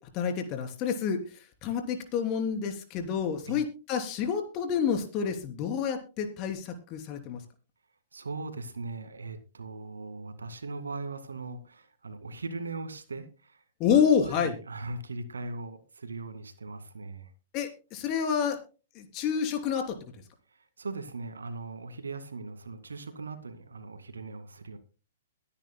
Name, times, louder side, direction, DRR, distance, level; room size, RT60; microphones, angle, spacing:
voice 1, 0.1-7.4 13.8-14.5 17.5-18.6 18.9-20.0, left 7 dB, 35° left, 6 dB, 3.2 m, -28 dB
voice 2, 8.1-13.6 13.9-17.3 20.5-24.8, right 3 dB, 85° right, 9 dB, 2.0 m, -39 dB
22.0 x 9.9 x 2.2 m, 0.33 s
hypercardioid pair, 120°, 0 cm